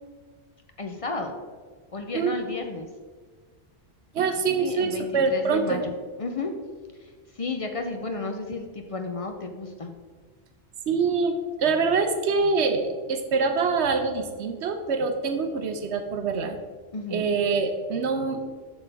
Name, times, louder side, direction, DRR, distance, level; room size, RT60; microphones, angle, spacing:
voice 1, 0.8-1.4 1.9-2.9 4.6-5.9 6.2-6.5 7.4-9.9 16.9-17.3, left 3 dB, 45° left, 5 dB, 0.4 m, -32 dB
voice 2, 4.1-5.8 10.9-16.6 17.1-18.5, right 4 dB, 70° right, 7 dB, 0.9 m, -25 dB
7.7 x 6.1 x 3.4 m, 1.5 s
omnidirectional pair, 1.2 m